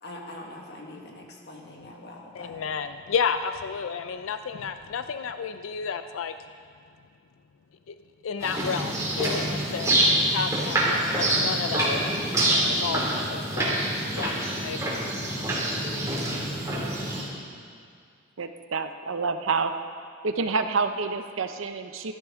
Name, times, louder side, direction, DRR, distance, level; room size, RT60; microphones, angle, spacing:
voice 1, 0.0-2.6, left 1 dB, 55° left, 0 dB, 1.7 m, -43 dB
voice 2, 2.3-6.3 7.9-8.0 8.2-9.9 10.3-13.8 14.2-14.3 14.6-15.0, left 6 dB, 75° left, 10 dB, 0.4 m, -32 dB
sound 1, 8.4-17.2, right 1 dB, 15° right, 2.4 m, -26 dB
voice 3, 18.4-19.7 20.2-22.1, right 4 dB, 70° right, 8 dB, 0.7 m, -28 dB
14.5 x 12.0 x 3.6 m, 2.2 s
head